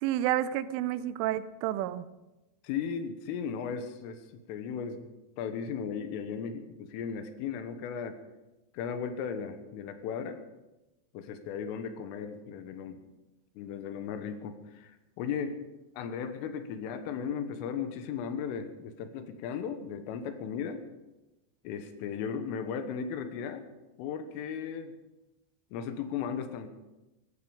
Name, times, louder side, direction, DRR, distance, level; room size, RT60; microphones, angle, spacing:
voice 1, 0.0-2.1, right 12 dB, 80° right, 14 dB, 3.1 m, -30 dB
voice 2, 2.6-5.1 5.4-8.2 8.7-10.4 11.1-13.0 13.6-14.9 15.2-15.6 16.0-20.8 21.7-23.7 24.0-24.9 25.7-26.7, left 7 dB, 85° left, 8 dB, 3.8 m, -36 dB
16.5 x 14.5 x 5.1 m, 1.0 s
omnidirectional pair, 5.7 m